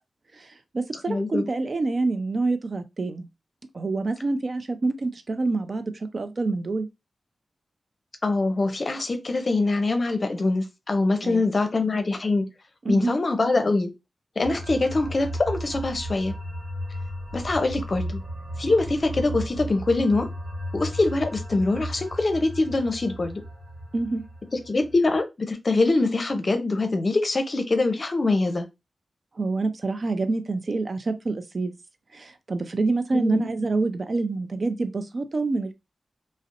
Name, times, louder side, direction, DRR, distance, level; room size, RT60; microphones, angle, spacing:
voice 1, 0.3-3.3 3.7-6.9 11.2-11.4 12.8-13.1 23.9-24.2 29.4-31.7 32.1-35.7, right 3 dB, 55° right, 0.4 m, -27 dB
voice 2, 1.1-1.5 8.2-12.5 12.9-13.9 14.4-16.3 17.3-18.2 18.6-20.3 20.7-23.4 24.7-28.7 33.1-33.4, left 2 dB, 55° left, 0.5 m, -24 dB
sound 1, 14.4-25.2, equal, 75° right, 1.0 m, -35 dB
2.7 x 2.0 x 2.5 m
cardioid pair, 50°, 0 cm